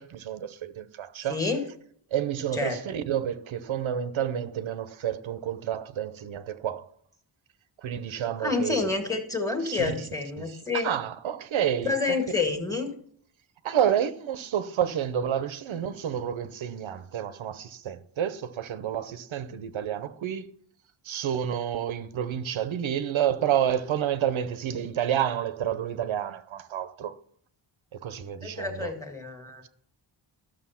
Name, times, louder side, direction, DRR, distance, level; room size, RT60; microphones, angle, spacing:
voice 1, 0.0-1.4 2.1-6.9 7.8-8.9 9.6-9.9 10.4-11.9 13.6-20.5 21.0-27.2 27.9-28.9, right 9 dB, 75° right, 0.8 m, -29 dB
voice 2, 1.3-1.6 2.5-2.8 8.4-10.9 11.8-12.9 28.4-29.6, left 4 dB, 5° left, 1.8 m, -28 dB
13.0 x 6.7 x 5.7 m
wide cardioid pair, 145°, 48 cm